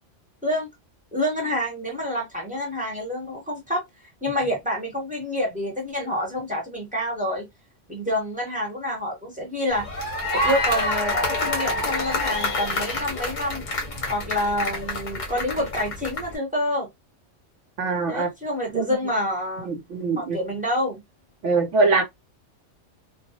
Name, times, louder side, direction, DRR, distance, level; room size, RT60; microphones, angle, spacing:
voice 1, 1.1-3.8 4.2-7.5 7.9-10.0 10.3-13.7 14.1-16.9 18.1-19.7 20.2-21.0, left 1 dB, 10° right, 0.7 m, -27 dB
sound 1, 9.7-16.4, left 2 dB, 45° left, 0.8 m, -27 dB
voice 2, 17.8-18.3 18.7-18.9 19.6-20.4 21.4-22.0, right 3 dB, 80° right, 1.0 m, -22 dB
2.3 x 2.0 x 2.7 m
omnidirectional pair, 1.2 m